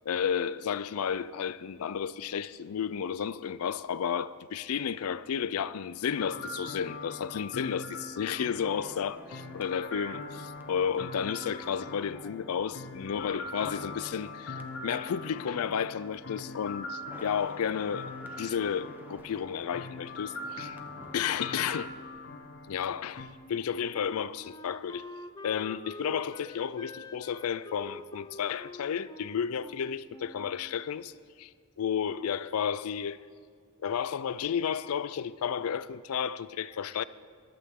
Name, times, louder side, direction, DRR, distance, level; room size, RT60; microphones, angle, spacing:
voice 1, 0.1-18.1 18.4-20.8 21.1-21.9 22.7-25.0 25.4-31.1 31.4-31.5 31.8-33.2 33.8-37.0, left 7 dB, 80° left, 0.4 m, -32 dB
sound 1, 6.2-23.3, left 3 dB, 60° left, 0.9 m, -42 dB
sound 2, 8.6-22.8 23.0-23.2, right 1 dB, 10° right, 0.8 m, -53 dB
Wind instrument woodwind instrument, 23.4-31.0, left 2 dB, 20° left, 0.4 m, -46 dB
14.5 x 11.5 x 3.7 m
head